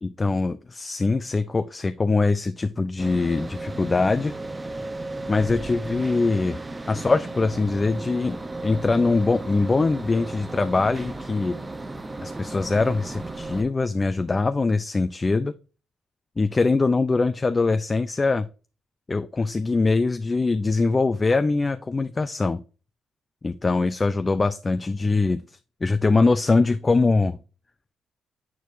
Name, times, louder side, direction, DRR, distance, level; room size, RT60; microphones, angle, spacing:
voice 1, 0.0-4.3 5.3-6.6 6.9-11.6 12.2-15.5 16.4-18.5 19.1-22.6 23.4-25.4 25.8-27.4, left 3 dB, 25° left, 11 dB, 0.4 m, -22 dB
sound 1, 3.0-13.6, right 2 dB, 20° right, 0.8 m, -35 dB
8.2 x 4.7 x 2.6 m, 0.34 s
cardioid pair, 90°, 0 cm